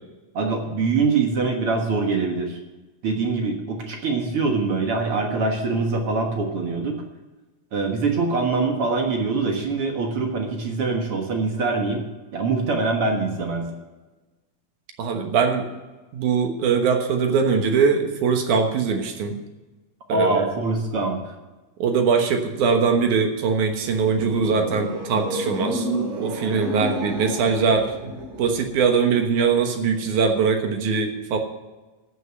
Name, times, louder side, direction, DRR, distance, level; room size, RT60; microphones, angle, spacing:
voice 1, 0.3-2.6 3.0-7.0 7.7-12.0 12.3-13.7 20.1-21.2 26.8-26.9, right 3 dB, 50° right, 2 dB, 2.0 m, -24 dB
voice 2, 15.0-15.7 16.1-19.4 20.1-20.4 21.8-25.9 26.2-28.1 28.4-31.4, right 5 dB, 70° right, 4 dB, 2.6 m, -21 dB
sound 1, 23.7-28.9, right 1 dB, 85° right, 4.8 m, -31 dB
14.0 x 6.6 x 7.7 m, 1.2 s
omnidirectional pair, 3.8 m